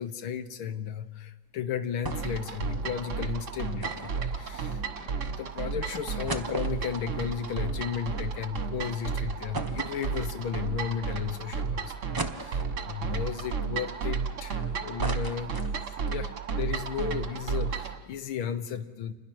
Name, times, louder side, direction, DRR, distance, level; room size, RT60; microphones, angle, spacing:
voice 1, 0.0-11.9 12.3-15.6 16.1-19.1, left 8 dB, 90° left, 11 dB, 2.0 m, -34 dB
sound 1, 2.0-2.5 2.7-2.8 3.8-5.1 5.6-5.7 6.0-8.5 8.8-8.9 9.5-10.7 11.2-11.3 12.2-13.0 13.5-14.5 14.8-16.1 16.5-16.6 16.8-17.0, right 2 dB, 20° right, 0.5 m, -38 dB
sound 2, 2.1-18.0, right 5 dB, 40° right, 1.5 m, -33 dB
28.0 x 20.5 x 6.2 m, 1.3 s
omnidirectional pair, 2.2 m